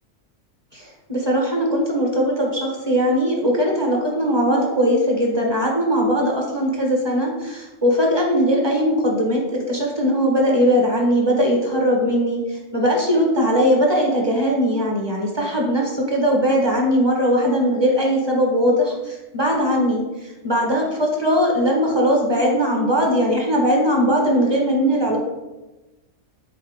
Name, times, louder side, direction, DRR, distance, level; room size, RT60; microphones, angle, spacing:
voice 1, 0.7-20.0 20.4-25.2, equal, 20° right, -1 dB, 1.2 m, -20 dB
7.5 x 4.3 x 3.6 m, 1.1 s
omnidirectional pair, 1.4 m